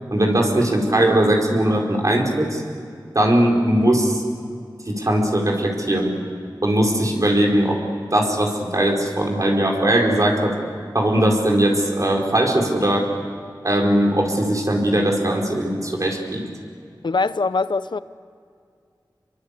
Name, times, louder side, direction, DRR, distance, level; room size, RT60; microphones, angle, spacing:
voice 1, 0.1-2.6 3.1-4.2 4.9-6.1 6.6-7.8 8.1-10.5 10.9-13.1 13.6-16.4, right 1 dB, 45° right, 4.7 m, -19 dB
voice 2, 17.0-18.0, left 3 dB, 70° left, 0.7 m, -22 dB
27.0 x 23.0 x 8.4 m
wide cardioid pair, 75°, 8 cm